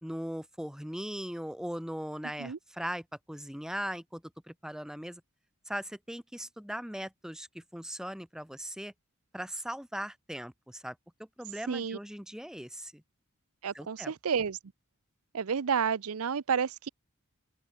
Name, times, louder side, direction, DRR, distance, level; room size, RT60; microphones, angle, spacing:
voice 1, 0.0-5.2 5.7-8.9 9.3-11.0 11.4-13.0 13.7-14.1, equal, 5° right, 1.3 m, -39 dB
voice 2, 11.7-12.0 13.6-14.6 15.3-16.9, right 6 dB, 85° right, 0.6 m, -30 dB
open air
head